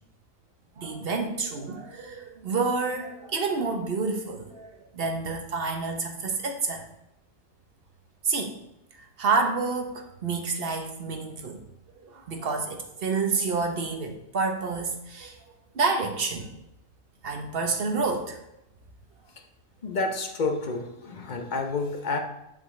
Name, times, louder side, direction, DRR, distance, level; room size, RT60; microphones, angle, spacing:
voice 1, 0.8-6.8 8.2-8.6 9.0-11.6 12.0-15.4 15.7-16.5 17.2-18.4, right 4 dB, 45° right, 3 dB, 1.1 m, -29 dB
voice 2, 19.8-22.2, left 3 dB, 40° left, 4 dB, 0.7 m, -29 dB
7.3 x 6.9 x 3.2 m, 0.85 s
omnidirectional pair, 1.5 m